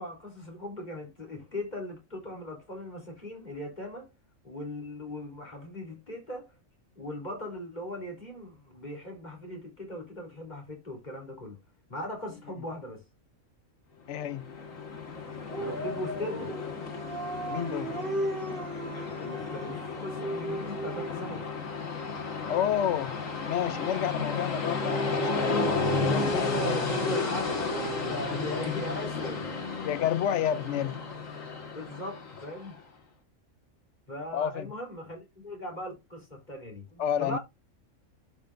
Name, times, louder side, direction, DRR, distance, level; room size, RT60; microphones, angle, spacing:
voice 1, 0.0-4.1 4.4-6.5 7.0-11.6 11.9-13.0 15.6-16.5 19.1-21.5 25.9-27.7 28.0-29.5 31.8-32.7 34.1-37.4, left 1 dB, 35° left, 3.8 m, -39 dB
voice 2, 14.1-14.5 17.5-18.0 22.5-26.8 29.8-31.0 34.3-34.7 37.0-37.4, left 10 dB, 70° left, 0.9 m, -30 dB
Train, 14.2-32.8, left 4 dB, 85° left, 2.2 m, -33 dB
Dog, 15.5-21.3 24.5-29.1, right 3 dB, 45° right, 1.5 m, -36 dB
12.0 x 5.5 x 2.6 m
omnidirectional pair, 1.3 m